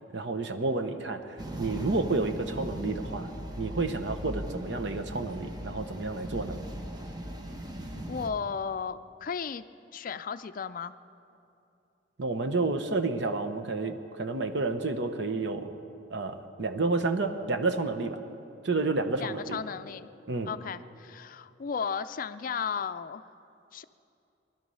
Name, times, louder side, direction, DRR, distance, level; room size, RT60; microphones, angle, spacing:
voice 1, 0.1-3.3 3.6-6.6 12.2-15.7 16.1-18.2 18.6-19.6 20.3-20.5, right 3 dB, 70° right, 7 dB, 1.0 m, -30 dB
sound 1, 1.4-8.3, right 1 dB, 20° right, 1.0 m, -39 dB
voice 2, 7.9-9.7 9.9-10.9 19.1-20.1 20.5-23.2 23.7-23.8, left 6 dB, 50° left, 12 dB, 0.4 m, -35 dB
20.5 x 12.0 x 5.5 m, 2.7 s
head